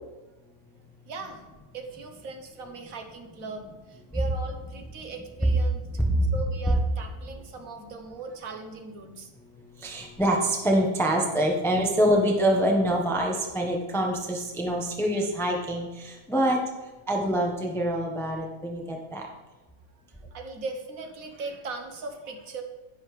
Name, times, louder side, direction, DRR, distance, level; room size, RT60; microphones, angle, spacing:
voice 1, 1.1-5.8 6.3-9.3 20.2-22.6, right 3 dB, 70° right, 5 dB, 1.5 m, -39 dB
voice 2, 9.8-16.6 17.1-19.3, equal, ahead, 1 dB, 0.9 m, -25 dB
10.5 x 10.0 x 3.3 m, 1.1 s
omnidirectional pair, 1.5 m